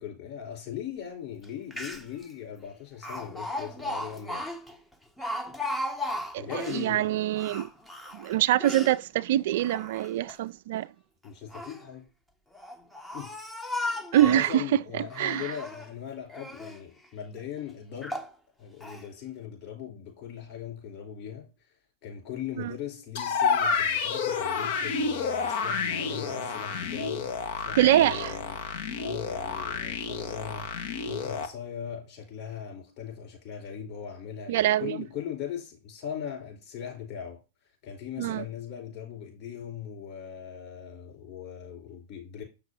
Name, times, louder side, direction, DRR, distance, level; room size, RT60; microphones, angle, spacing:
voice 1, 0.0-4.5 6.4-7.1 11.2-12.1 13.1-13.4 14.2-18.2 18.6-21.5 22.0-30.7 31.1-37.4 37.8-42.4, left 8 dB, 45° left, 4.8 m, -39 dB
Speech, 1.4-1.5 1.7-2.2 3.0-6.9 7.3-9.0 9.5-10.3 11.3-11.8 12.5-14.6 15.1-15.9 16.3-16.8 17.4-17.5 18.0-18.3 18.8-19.0, left 1 dB, 5° left, 0.9 m, -36 dB
voice 2, 6.7-7.7 8.1-10.9 14.1-14.6 15.2-15.4 22.6-22.7 27.8-28.3 34.5-35.0 38.2-38.4, right 13 dB, 60° right, 0.3 m, -24 dB
sound 1, 23.2-31.5, left 5 dB, 60° left, 1.4 m, -30 dB
7.7 x 6.0 x 4.2 m
hypercardioid pair, 105°, 0 cm